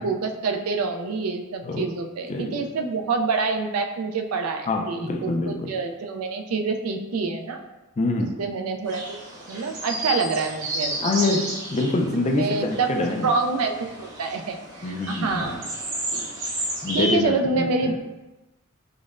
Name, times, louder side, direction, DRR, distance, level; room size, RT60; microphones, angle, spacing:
voice 1, 0.0-7.6 8.4-9.2 9.5-11.1 12.4-15.6 16.9-18.1, right 4 dB, 80° right, 5 dB, 0.4 m, -27 dB
voice 2, 2.3-2.7 4.7-5.7 8.0-8.4 11.0-11.4 11.7-13.3 14.8-15.4 16.8-17.9, left 2 dB, 30° left, 3 dB, 0.3 m, -25 dB
sound 1, 8.9-17.1, right 1 dB, 60° right, 1.0 m, -32 dB
5.1 x 2.1 x 2.4 m, 1.0 s
head